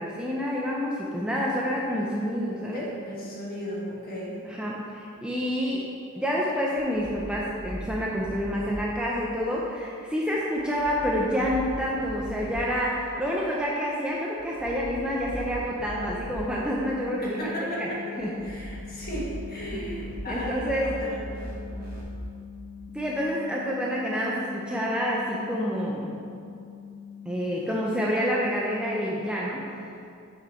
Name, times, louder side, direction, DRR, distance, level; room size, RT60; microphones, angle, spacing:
voice 1, 0.0-2.8 4.4-5.9 6.2-17.9 18.2-18.3 19.7-19.9 20.3-20.9 22.9-26.1 27.3-29.6, equal, 5° right, -4 dB, 0.5 m, -28 dB
voice 2, 2.7-4.4 17.2-21.9, equal, 45° left, -5 dB, 1.6 m, -35 dB
sound 1, 6.8-8.7 10.6-12.5 14.4-16.3 18.2-22.0, right 1 dB, 45° right, 1.4 m, -39 dB
sound 2, 15.8-29.5, left 8 dB, 80° left, 1.2 m, -44 dB
6.2 x 6.0 x 4.3 m, 2.4 s
head